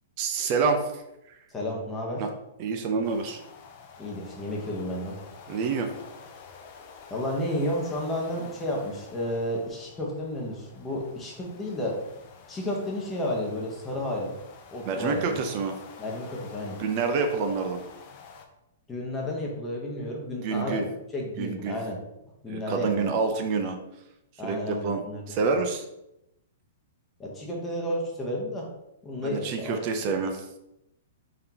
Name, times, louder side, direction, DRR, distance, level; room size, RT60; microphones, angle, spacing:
voice 1, 0.2-1.0 1.3-1.4 2.2-2.3 2.6-3.4 5.5-5.9 14.9-15.7 16.8-17.8 20.4-20.9 21.4-21.8 22.5-23.8 24.4-25.0 25.3-25.8 29.2-30.5, right 4 dB, 40° right, 5 dB, 0.5 m, -27 dB
voice 2, 1.5-2.2 4.0-5.2 7.1-12.0 12.5-14.3 14.7-15.5 16.0-16.8 18.9-22.0 22.4-23.2 24.4-25.5 27.2-28.7 29.0-29.8, left 1 dB, 10° left, -2 dB, 0.9 m, -32 dB
sound 1, 3.0-18.4, left 5 dB, 40° left, 0.5 m, -49 dB
3.7 x 3.6 x 2.9 m, 0.87 s
hypercardioid pair, 150°, 0 cm